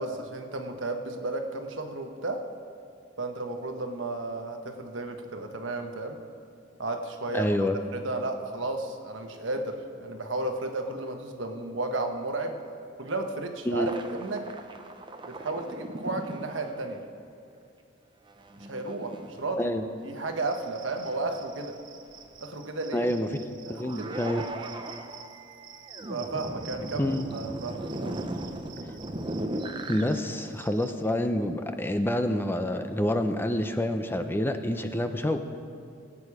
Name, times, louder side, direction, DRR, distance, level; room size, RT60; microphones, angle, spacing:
voice 1, 0.0-2.4 3.2-6.2 6.8-12.6 13.0-13.9 14.2-14.5 15.2-17.0 18.6-19.8 20.0-21.7 22.4-23.1 23.6-24.1 26.1-28.2, right 2 dB, 80° right, 5 dB, 1.2 m, -33 dB
voice 2, 7.3-7.8 13.7-13.9 19.6-19.8 22.9-23.3 23.7-24.4 27.0-27.2 29.9-35.4, left 1 dB, 10° left, 7 dB, 0.5 m, -27 dB
sound 1, 13.8-16.9 18.3-19.8 20.2-20.6 21.0-21.6 22.2-22.4 23.7-30.0, right 1 dB, 25° right, 0.7 m, -38 dB
Cricket, 20.4-30.9, right 7 dB, 45° right, 1.3 m, -50 dB
19.0 x 8.5 x 4.8 m, 2.4 s
head